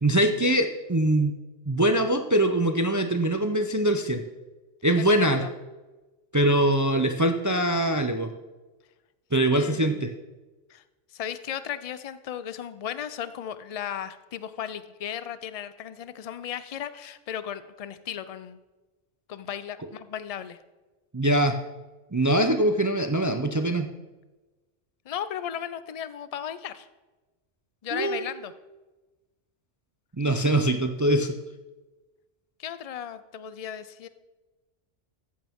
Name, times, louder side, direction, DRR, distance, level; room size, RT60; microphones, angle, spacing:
voice 1, 0.0-1.4 1.7-4.2 4.8-5.4 6.3-8.3 9.3-10.1 21.1-21.6 22.1-23.9 27.9-28.2 30.2-31.3, right 1 dB, 30° right, 6 dB, 0.3 m, -23 dB
voice 2, 5.0-5.5 9.5-10.1 10.7-10.8 11.1-18.6 19.3-20.6 25.1-26.9 27.8-28.5 32.6-34.1, left 9 dB, 55° left, 13 dB, 0.4 m, -36 dB
14.0 x 8.7 x 3.6 m, 1.2 s
omnidirectional pair, 1.3 m